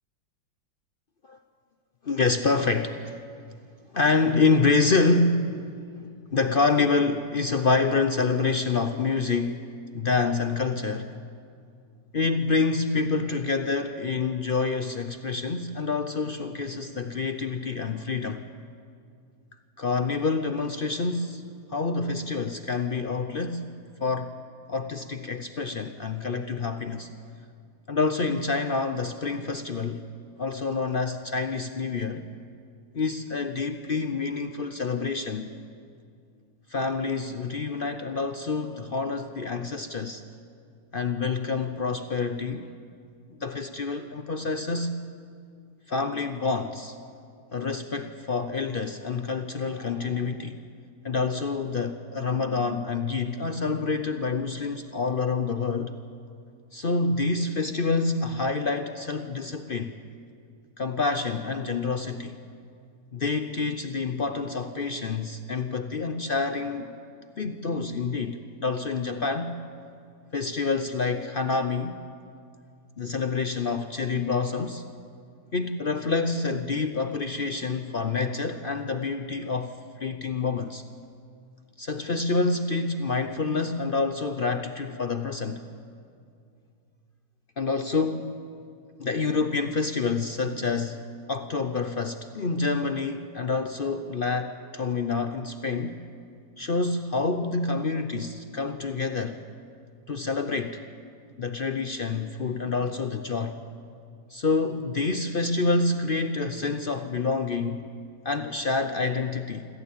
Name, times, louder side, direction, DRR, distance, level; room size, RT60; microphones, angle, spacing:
voice 1, 2.0-3.2 3.9-5.7 6.3-9.6 9.9-11.1 12.1-18.4 19.8-21.4 21.7-23.7 24.0-24.3 24.7-27.1 27.9-30.0 30.4-32.2 32.9-35.5 36.7-40.2 40.9-42.7 43.4-45.0 45.9-47.0 47.5-50.6 51.0-55.9 56.7-59.9 60.8-62.4 63.1-66.9 67.4-69.6 70.3-72.0 73.0-74.8 75.5-80.8 81.8-85.6 87.6-88.4 89.0-91.0 91.3-96.0 96.6-99.4 100.1-100.8 101.4-103.6 104.3-107.9 108.2-109.7, left 4 dB, 60° left, 8 dB, 0.5 m, -27 dB
26.0 x 14.0 x 8.5 m, 2.4 s
omnidirectional pair, 2.0 m